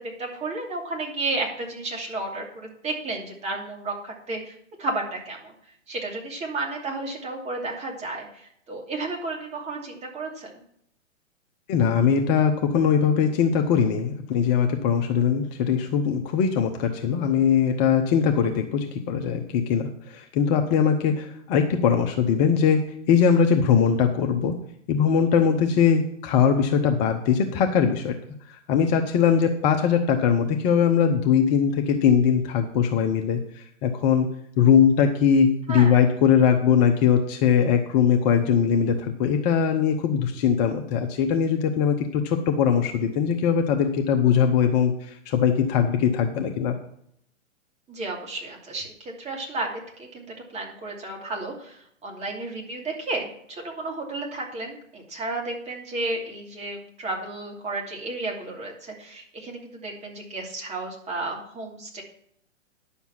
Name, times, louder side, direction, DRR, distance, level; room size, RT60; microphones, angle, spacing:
voice 1, 0.0-4.5 4.8-5.5 5.9-10.6 35.7-36.0 47.9-62.0, right 2 dB, 15° right, 0 dB, 2.7 m, -32 dB
voice 2, 11.7-22.8 23.1-24.5 24.9-28.1 28.5-34.3 34.6-46.8, left 7 dB, 35° left, 5 dB, 1.1 m, -21 dB
11.0 x 7.1 x 5.9 m, 0.69 s
hypercardioid pair, 125°, 38 cm